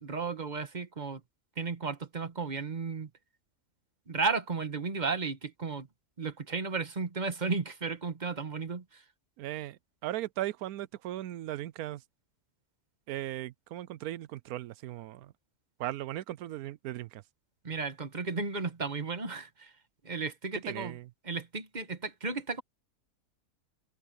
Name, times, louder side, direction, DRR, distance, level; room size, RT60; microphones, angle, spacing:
voice 1, 0.0-1.2 1.6-3.1 4.1-5.9 6.2-9.0 17.6-19.7 20.0-21.0 21.2-22.6, right 4 dB, 30° right, 1.5 m, -34 dB
voice 2, 9.4-12.0 13.1-15.3 15.8-17.2 20.6-21.0, right 14 dB, 75° right, 1.0 m, -37 dB
omnidirectional pair, 1.6 m